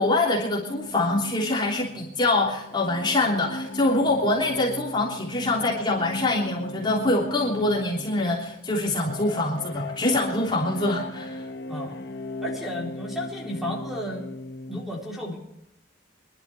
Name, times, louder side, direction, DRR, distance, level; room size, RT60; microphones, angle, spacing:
voice 1, 0.0-11.4, left 2 dB, 25° left, -4 dB, 3.2 m, -24 dB
sound 1, 0.7-14.8, left 2 dB, 60° left, 1.5 m, -38 dB
voice 2, 12.4-14.3 14.7-15.4, equal, ahead, -3 dB, 3.9 m, -33 dB
25.0 x 12.0 x 3.5 m, 0.79 s
head